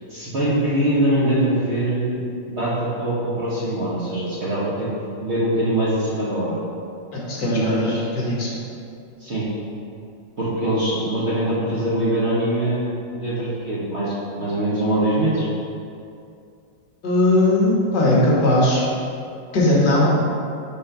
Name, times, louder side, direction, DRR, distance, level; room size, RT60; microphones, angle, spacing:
voice 1, 0.1-2.2 2.5-4.9 5.2-6.6 7.4-8.0 9.2-9.5 10.4-12.9 13.1-15.5, right 1 dB, 40° right, -9 dB, 1.2 m, -23 dB
voice 2, 7.1-8.5 17.0-18.9 19.5-20.2, left 1 dB, 65° left, -5 dB, 1.8 m, -18 dB
5.2 x 3.8 x 5.6 m, 2.5 s
omnidirectional pair, 2.1 m